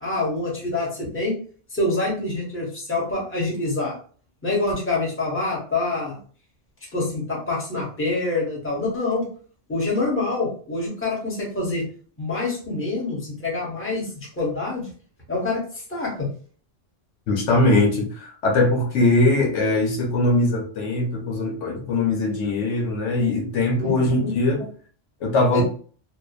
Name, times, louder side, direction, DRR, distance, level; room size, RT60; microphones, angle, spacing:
voice 1, 0.0-1.4 1.7-4.0 4.4-6.2 6.9-9.2 9.7-11.9 12.2-14.1 14.4-14.9 15.3-15.6 15.9-16.3 23.8-24.3 25.5-25.6, left 2 dB, 10° left, -4 dB, 0.9 m, -26 dB
voice 2, 17.3-24.7 25.2-25.6, left 2 dB, 75° left, 0 dB, 1.0 m, -21 dB
2.8 x 2.1 x 2.4 m, 0.43 s
omnidirectional pair, 1.3 m